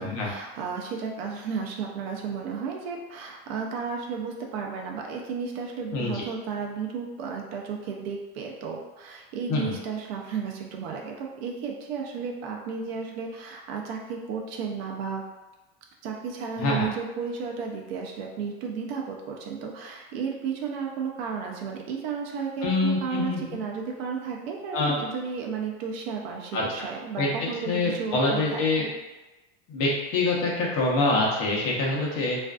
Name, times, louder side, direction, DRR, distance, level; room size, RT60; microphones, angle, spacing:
voice 1, 0.0-15.2 16.0-28.9, right 6 dB, 65° right, 0 dB, 0.5 m, -33 dB
voice 2, 5.9-6.2 9.5-9.7 16.6-16.9 22.6-23.4 24.7-25.0 26.5-26.6 27.2-27.3 27.6-28.8 29.7-32.4, left 2 dB, 45° left, -3 dB, 0.6 m, -25 dB
2.4 x 2.3 x 2.3 m, 1.1 s
supercardioid pair, 165°, 32 cm